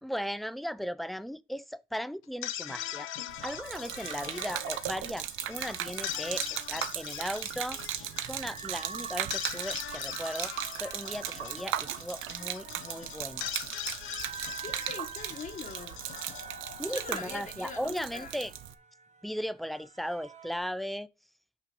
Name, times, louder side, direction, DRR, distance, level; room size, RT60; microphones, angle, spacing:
voice 1, 0.0-10.5 10.8-13.5 16.8-18.5 19.2-21.1, equal, ahead, 0.4 m, -37 dB
sound 1, 2.2-17.5, left 12 dB, 85° left, 0.7 m, -41 dB
Gurgling / Liquid, 3.3-18.7, right 12 dB, 85° right, 0.6 m, -38 dB
sound 2, 8.0-20.6, right 6 dB, 35° right, 0.9 m, -48 dB
voice 2, 14.6-16.0 16.8-18.4, left 4 dB, 40° left, 1.1 m, -42 dB
6.0 x 4.8 x 5.9 m
cardioid pair, 90°, 20 cm